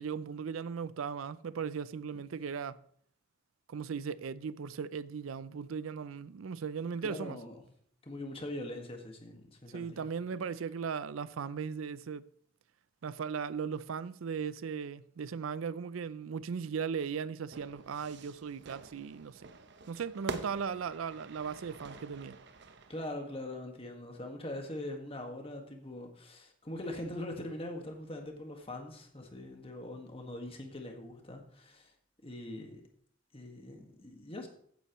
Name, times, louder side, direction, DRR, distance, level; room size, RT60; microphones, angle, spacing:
voice 1, 0.0-2.8 3.7-7.4 9.7-12.2 13.0-19.5 19.9-22.4, right 6 dB, 85° right, 0.4 m, -37 dB
voice 2, 7.0-7.6 8.0-10.1 22.9-31.9 32.2-32.8 33.3-34.5, left 1 dB, 30° left, 1.7 m, -42 dB
Fire / Fireworks, 17.5-23.1, right 4 dB, 55° right, 0.8 m, -46 dB
15.5 x 8.9 x 3.1 m
head